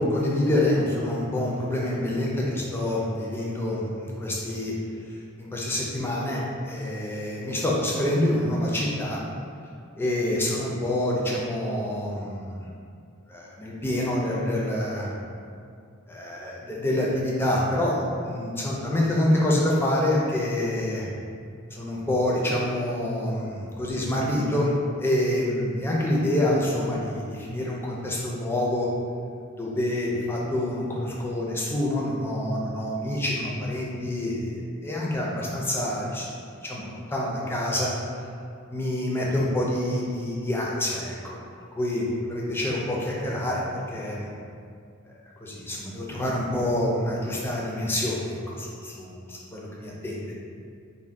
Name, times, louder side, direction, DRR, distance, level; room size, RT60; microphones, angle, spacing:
voice 1, 0.0-4.7 5.1-9.2 10.0-12.7 13.3-15.1 16.1-21.1 21.7-24.7 25.0-28.9 29.6-36.3 36.6-37.9 38.7-41.4 41.7-44.3 45.4-50.3, left 1 dB, 10° left, -4 dB, 0.3 m, -27 dB
2.5 x 2.1 x 3.3 m, 2.3 s
head